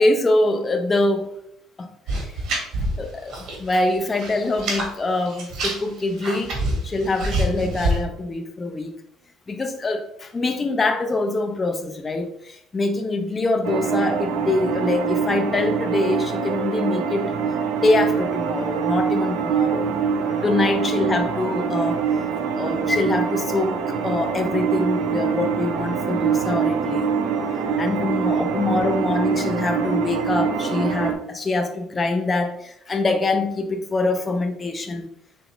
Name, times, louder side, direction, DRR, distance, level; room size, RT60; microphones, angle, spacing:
voice 1, 0.0-1.4 1.8-2.4 3.0-6.6 6.8-8.9 9.5-19.9 20.4-22.1 22.5-27.1 27.8-35.1, left 2 dB, 25° left, 0.7 m, -24 dB
sound 1, 2.1-3.7 3.9-4.9 5.3-8.0, right 1 dB, 55° right, 1.7 m, -26 dB
sound 2, 13.6-31.1, right 6 dB, 75° right, 0.6 m, -24 dB
5.0 x 3.4 x 3.0 m
supercardioid pair, 100°, 0 cm